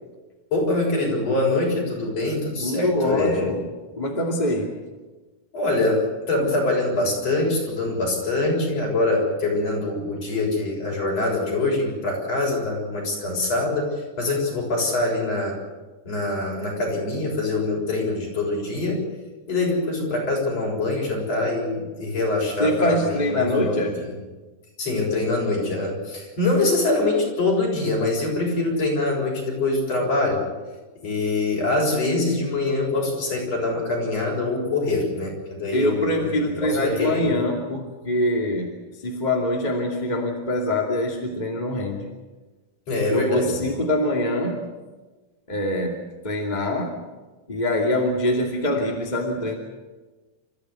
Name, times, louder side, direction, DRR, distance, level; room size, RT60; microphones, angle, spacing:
voice 1, 0.5-3.5 5.5-13.9 14.2-15.6 16.0-19.0 19.5-24.1 24.8-30.4 31.0-37.4 42.9-43.7, left 2 dB, 50° left, -1 dB, 7.9 m, -24 dB
voice 2, 2.6-3.6 4.0-4.7 22.6-23.9 35.7-42.1 43.1-44.7 45.5-47.0 47.5-49.6, left 1 dB, 15° left, -1 dB, 2.2 m, -24 dB
29.5 x 14.5 x 8.2 m, 1.2 s
omnidirectional pair, 3.6 m